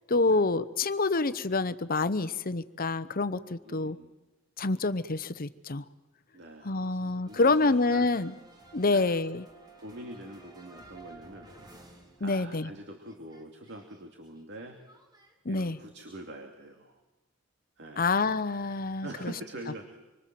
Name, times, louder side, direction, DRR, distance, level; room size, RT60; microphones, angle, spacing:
voice 1, 0.1-4.0 4.6-5.8 6.6-8.3 8.7-9.4 12.2-12.7 15.4-15.8 18.0-19.3, left 3 dB, 45° left, 13 dB, 0.9 m, -27 dB
voice 2, 3.6-4.1 6.3-8.1 8.9-9.1 9.8-11.5 12.2-14.8 15.5-17.0 17.8-18.2 19.0-20.0, right 1 dB, 60° right, 3 dB, 2.6 m, -44 dB
sound 1, 7.3-12.7 13.0-15.3, right 3 dB, 20° right, 4.0 m, -54 dB
26.5 x 24.5 x 7.7 m, 1.1 s
head